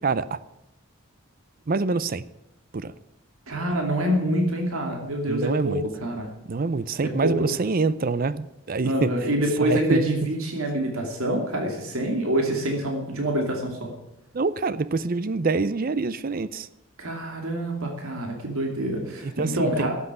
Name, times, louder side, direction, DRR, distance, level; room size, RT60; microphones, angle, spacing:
voice 1, 0.0-0.4 1.7-2.2 2.7-2.9 5.3-5.8 6.5-9.1 9.6-10.0 14.3-16.7 19.2-19.9, right 4 dB, 40° right, 0.5 m, -25 dB
voice 2, 3.5-6.3 7.0-7.3 8.8-13.9 17.0-19.9, right 1 dB, 75° right, 2.7 m, -26 dB
13.0 x 8.3 x 9.6 m
head